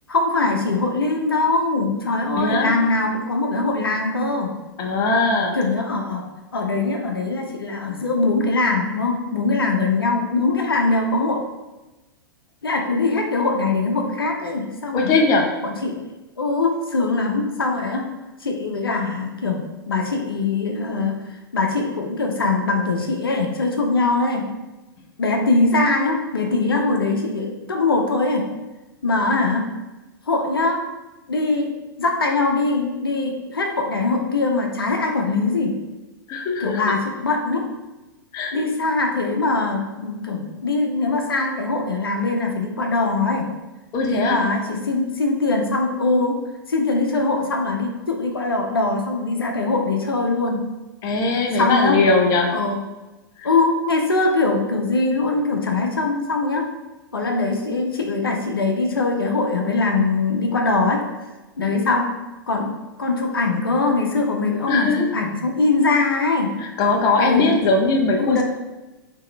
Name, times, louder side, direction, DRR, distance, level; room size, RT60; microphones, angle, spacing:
voice 1, 0.1-4.6 5.5-6.3 6.5-11.4 12.6-15.2 15.6-16.0 16.4-18.1 18.4-19.6 19.9-21.1 21.5-24.4 25.2-28.4 29.0-29.6 30.3-30.8 31.3-31.7 32.0-35.7 36.6-37.6 38.5-43.5 44.1-46.4 46.7-50.7 51.6-52.0 52.5-52.8 53.4-56.7 57.1-61.0 61.6-62.1 62.5-62.7 63.0-66.5 67.2-67.5 68.2-68.4, left 3 dB, 80° left, 2 dB, 0.7 m, -22 dB
voice 2, 2.4-2.7 4.8-5.6 14.9-15.5 36.3-37.0 38.3-38.6 43.9-44.4 51.0-52.6 53.4-53.5 64.7-65.1 66.6-68.4, left 3 dB, 30° left, 2 dB, 0.6 m, -20 dB
3.6 x 2.9 x 3.3 m, 1.1 s
figure-of-eight pair, 100°, 12 cm